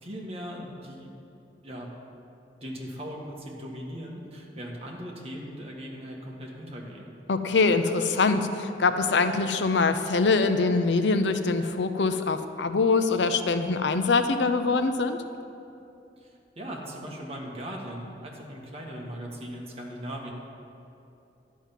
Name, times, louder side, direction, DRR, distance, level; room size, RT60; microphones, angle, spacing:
voice 1, 0.0-1.1 1.6-1.9 2.6-7.1 16.2-16.3 16.5-20.3, equal, 35° right, -1 dB, 1.5 m, -39 dB
voice 2, 7.3-15.2, left 4 dB, 80° left, 9 dB, 0.6 m, -24 dB
11.0 x 5.5 x 7.4 m, 2.7 s
head